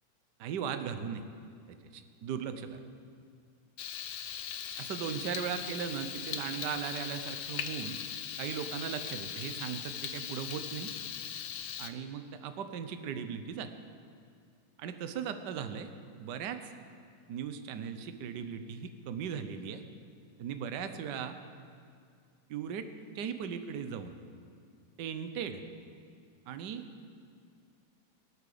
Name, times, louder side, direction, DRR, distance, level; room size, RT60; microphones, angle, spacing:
voice 1, 0.4-1.2 1.9-2.8 4.8-8.0 8.4-10.9 11.8-13.7 14.8-15.9 16.2-16.6 17.3-19.8 20.4-21.4 22.5-22.9 23.1-24.2 25.0-25.6 26.5-26.8, right 7 dB, 65° right, 9 dB, 1.4 m, -38 dB
Frying (food), 3.8-11.9, left 8 dB, 85° left, 1.7 m, -39 dB
21.5 x 8.8 x 6.8 m, 2.3 s
omnidirectional pair, 2.2 m